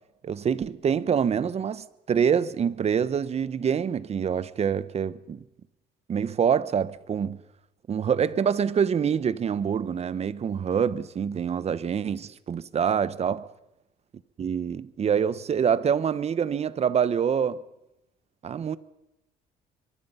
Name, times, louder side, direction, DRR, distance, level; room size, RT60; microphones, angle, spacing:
voice 1, 0.2-5.4 6.1-7.4 7.9-13.4 14.4-17.6 18.4-18.8, right 7 dB, 40° right, 1.0 m, -26 dB
23.5 x 23.5 x 5.7 m
cardioid pair, 110°, 17 cm